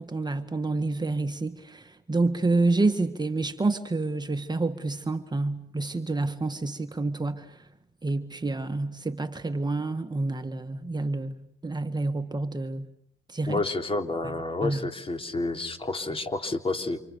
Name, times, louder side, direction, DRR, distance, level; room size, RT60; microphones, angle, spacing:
voice 1, 0.0-7.7 8.0-11.4 11.6-12.9 13.3-13.6 14.6-14.9, right 3 dB, 20° right, 1.7 m, -28 dB
voice 2, 13.5-17.0, left 2 dB, 30° left, 3.5 m, -29 dB
28.5 x 28.0 x 6.9 m
cardioid pair, 90°, 20 cm